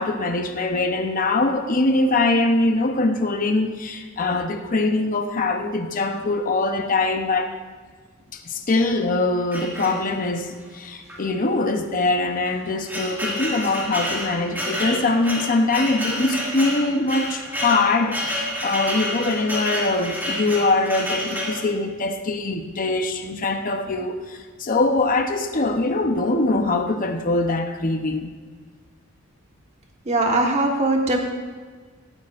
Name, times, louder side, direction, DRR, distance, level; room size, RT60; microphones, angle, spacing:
voice 1, 0.0-7.5 8.3-28.3, left 2 dB, 40° left, 5 dB, 0.8 m, -23 dB
sound 1, 9.5-10.4 11.1-11.2 11.5-11.6 12.3-21.6, equal, 10° right, 2.6 m, -29 dB
voice 2, 30.0-31.2, right 2 dB, 35° right, 1 dB, 1.4 m, -20 dB
17.5 x 13.0 x 2.5 m, 1.5 s
head